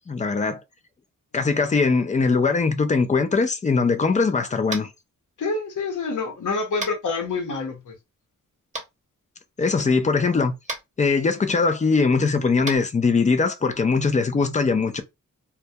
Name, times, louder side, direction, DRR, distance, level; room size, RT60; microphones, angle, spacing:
voice 1, 0.1-0.6 1.3-4.9 9.6-10.5 11.0-15.0, left 4 dB, 25° left, 0.4 m, -21 dB
Tap, 4.7-5.0 6.8-7.0 8.7-8.8 10.6-10.8 12.6-12.8, right 2 dB, 25° right, 0.8 m, -31 dB
voice 2, 5.4-7.9, left 4 dB, 70° left, 0.8 m, -27 dB
2.2 x 2.2 x 2.7 m
wide cardioid pair, 110°, 32 cm